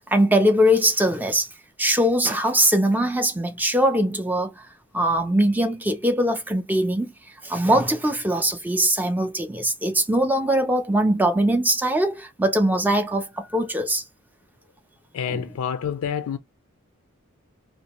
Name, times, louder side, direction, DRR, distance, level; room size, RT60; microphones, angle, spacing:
voice 1, 0.1-1.5 1.8-4.6 4.9-7.1 7.4-14.0 15.3-15.4, right 1 dB, 10° right, 0.4 m, -21 dB
voice 2, 15.1-16.4, left 8 dB, 85° left, 0.3 m, -28 dB
2.5 x 2.3 x 2.9 m
head